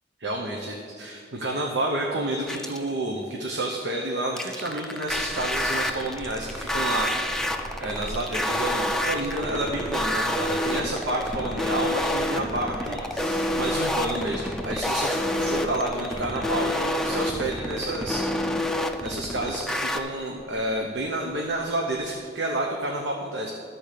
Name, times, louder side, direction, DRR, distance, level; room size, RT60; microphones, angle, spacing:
voice 1, 0.2-7.5 7.8-18.3 19.0-23.5, right 1 dB, 75° right, -1 dB, 0.9 m, -30 dB
sound 1, 2.5-2.9 4.4-20.0, left 1 dB, 5° left, 0.4 m, -27 dB
sound 2, 5.1-22.0, equal, 15° right, 1.4 m, -40 dB
12.0 x 4.4 x 6.6 m, 2.3 s
head